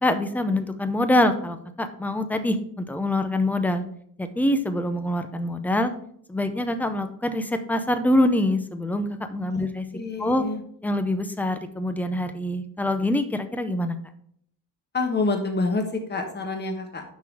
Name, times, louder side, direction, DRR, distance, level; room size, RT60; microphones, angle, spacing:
voice 1, 0.0-3.8 4.2-5.9 6.3-9.8 10.2-10.4 10.8-14.0, left 1 dB, 5° left, 8 dB, 0.5 m, -25 dB
voice 2, 9.9-10.6 14.9-17.0, left 3 dB, 30° left, 4 dB, 1.2 m, -27 dB
10.5 x 3.8 x 4.7 m, 0.66 s
cardioid pair, 160°, 37 cm